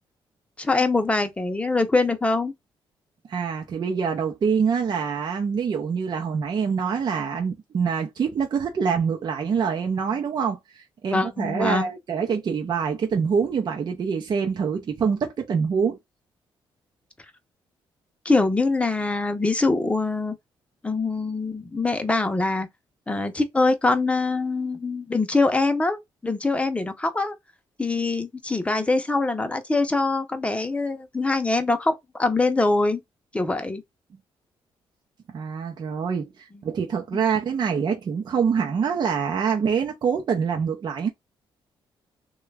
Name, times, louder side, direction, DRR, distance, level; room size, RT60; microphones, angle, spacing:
voice 1, 0.6-2.5 11.1-11.9 18.2-20.4 20.8-22.7 23.1-27.3 27.8-33.0 33.3-33.8, left 3 dB, 15° left, 0.7 m, -23 dB
voice 2, 3.3-16.0 35.3-41.1, right 6 dB, 50° right, 0.6 m, -25 dB
3.1 x 2.3 x 3.3 m
cardioid pair, 100°, 9 cm